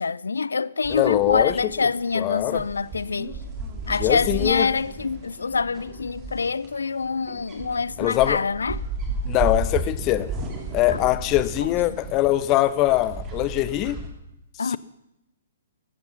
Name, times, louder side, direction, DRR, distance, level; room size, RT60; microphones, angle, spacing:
voice 1, 0.0-3.4 3.9-8.8 10.9-11.0 11.6-11.7 14.6-14.8, left 4 dB, 70° left, 0.4 m, -25 dB
sound 1, 0.8-14.1, right 2 dB, 25° right, 2.8 m, -34 dB
voice 2, 0.9-1.5 2.2-2.6 4.0-4.7 8.0-8.4 9.2-10.3 10.7-14.0 14.7-14.8, left 16 dB, 30° left, 0.7 m, -22 dB
15.0 x 13.0 x 5.8 m
figure-of-eight pair, 120°, 0 cm